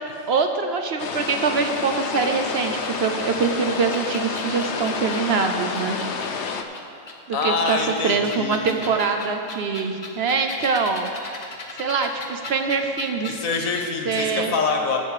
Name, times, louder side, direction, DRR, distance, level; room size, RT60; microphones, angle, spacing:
voice 1, 0.3-6.6 7.3-7.8 8.0-11.3 11.8-13.4 14.0-14.5, right 5 dB, 60° right, 5 dB, 0.8 m, -24 dB
sound 1, 1.0-6.6, left 5 dB, 65° left, 1.0 m, -29 dB
sound 2, 1.0-5.3 5.7-7.1 7.6-13.9 14.1-14.3, left 3 dB, 35° left, 0.9 m, -38 dB
voice 2, 7.3-9.0 13.2-15.0, left 4 dB, 80° left, 2 dB, 1.6 m, -25 dB
14.5 x 6.6 x 4.8 m, 2.5 s
omnidirectional pair, 1.4 m